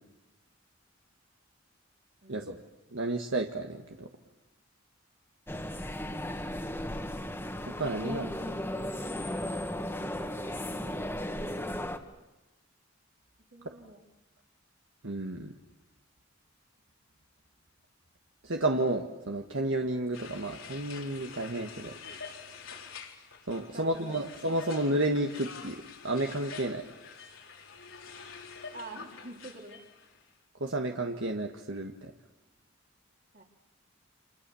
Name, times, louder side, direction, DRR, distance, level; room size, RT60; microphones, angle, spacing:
voice 1, 2.9-4.1 7.7-8.5 15.0-15.5 18.4-21.9 23.5-26.8 30.6-32.1, right 1 dB, 70° right, 3 dB, 1.6 m, -31 dB
sound 1, 5.5-12.0, left 1 dB, 10° left, 1.8 m, -35 dB
voice 2, 13.5-14.0 23.7-24.3 28.7-29.8 33.3-33.4, right 2 dB, 50° right, 2 dB, 3.4 m, -47 dB
sound 2, 20.1-30.2, left 6 dB, 85° left, 4.1 m, -47 dB
29.5 x 27.5 x 7.1 m, 1.0 s
head